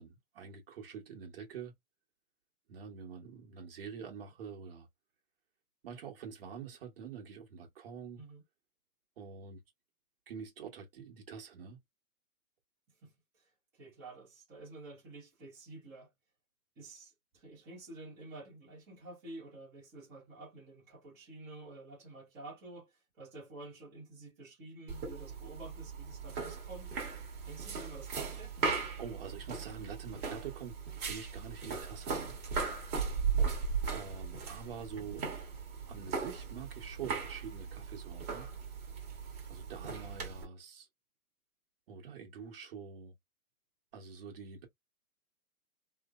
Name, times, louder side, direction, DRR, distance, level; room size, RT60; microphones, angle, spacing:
voice 1, 0.0-1.7 2.7-4.9 5.8-8.2 9.2-9.6 10.3-11.8 28.7-32.4 33.9-35.3 35.9-38.5 39.5-40.9 41.9-43.1 43.9-44.7, right 6 dB, 40° right, 1.2 m, -46 dB
voice 2, 13.7-16.1 16.8-26.9 27.4-28.5 33.4-33.6, right 2 dB, 5° right, 0.6 m, -50 dB
sound 1, 24.9-40.4, right 5 dB, 20° right, 1.3 m, -38 dB
3.1 x 2.0 x 2.4 m
hypercardioid pair, 155°, 44 cm